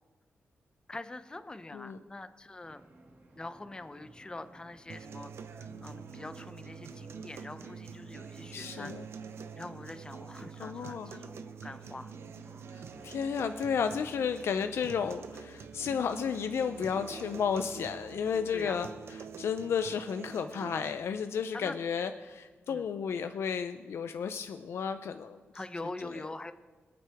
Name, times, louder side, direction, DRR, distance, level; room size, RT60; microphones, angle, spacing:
voice 1, 0.9-2.8 3.4-8.9 9.6-12.1 15.0-15.1 18.5-18.8 21.5-21.8 22.7-22.9 25.5-26.5, left 2 dB, 20° left, 11 dB, 0.7 m, -44 dB
sound 1, 2.6-18.3, right 2 dB, 55° right, 2.2 m, -56 dB
sound 2, 4.9-20.9, right 6 dB, 75° right, 0.7 m, -46 dB
voice 2, 8.5-9.1 10.6-11.1 12.7-18.9 19.4-25.4 26.1-26.3, left 6 dB, 75° left, 9 dB, 0.5 m, -33 dB
24.5 x 9.0 x 3.5 m, 1.4 s
wide cardioid pair, 110°, 4 cm